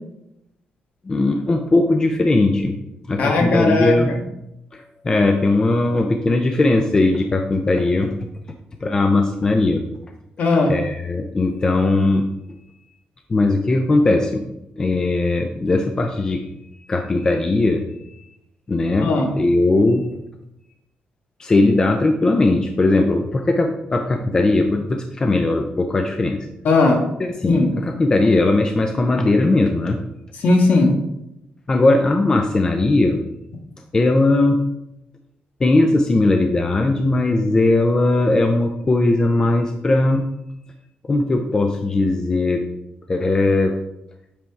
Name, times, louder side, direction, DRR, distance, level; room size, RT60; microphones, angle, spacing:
voice 1, 1.1-2.8 3.1-4.1 4.7-8.1 8.8-9.8 10.7-12.2 13.3-14.4 14.8-16.4 16.8-17.9 18.7-20.1 21.4-26.4 27.2-30.0 31.7-33.2 33.9-34.6 35.6-40.3 41.1-42.6 43.1-43.7, left 2 dB, 20° left, 4 dB, 0.5 m, -18 dB
voice 2, 3.2-3.9 10.4-10.7 19.0-19.3 26.6-27.0 27.4-27.7 30.4-30.9, left 3 dB, 60° left, 1 dB, 1.5 m, -17 dB
7.6 x 3.4 x 4.6 m, 0.85 s
cardioid pair, 155°, 3 cm